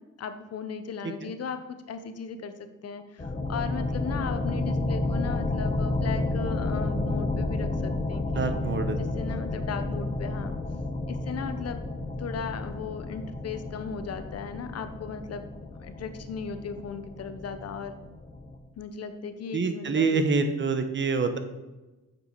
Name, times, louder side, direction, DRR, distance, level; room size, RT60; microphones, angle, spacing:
voice 1, 0.2-8.5 8.9-10.6 11.1-11.8 12.2-15.5 15.8-17.9 18.8-20.2, left 6 dB, 55° left, 9 dB, 1.0 m, -37 dB
sound 1, 3.2-18.6, left 2 dB, 25° left, 1.4 m, -31 dB
voice 2, 8.3-9.0 9.3-9.4 19.5-21.4, right 4 dB, 40° right, 8 dB, 1.1 m, -26 dB
8.7 x 7.1 x 4.7 m, 1.1 s
cardioid pair, 90°, 30 cm